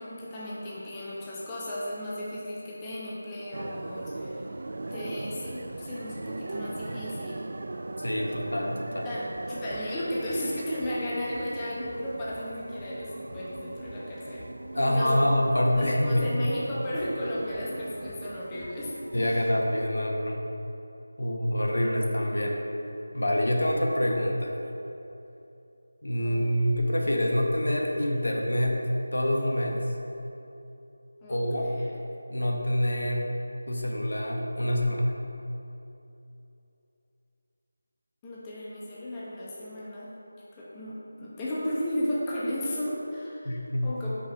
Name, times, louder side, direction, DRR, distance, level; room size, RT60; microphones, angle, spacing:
voice 1, 0.0-4.5 4.9-7.4 9.0-15.2 15.7-18.9 19.2-19.4 21.8-22.1 26.2-26.5 31.2-32.0 38.2-40.1 40.5-44.2, left 1 dB, 15° left, -7 dB, 0.8 m, -35 dB
sound 1, 3.5-19.9, right 2 dB, 60° right, 0.3 m, -39 dB
voice 2, 8.0-9.1 14.7-16.3 19.1-20.4 21.2-22.6 23.1-24.6 26.0-29.8 31.3-31.7 32.3-33.3 33.7-35.1 43.4-44.0, left 1 dB, 85° left, 0 dB, 1.0 m, -26 dB
sound 2, 9.3-16.1 16.4-19.4, left 1 dB, 45° left, 0.7 m, -48 dB
5.1 x 4.9 x 5.0 m, 2.9 s
figure-of-eight pair, 170°, 0 cm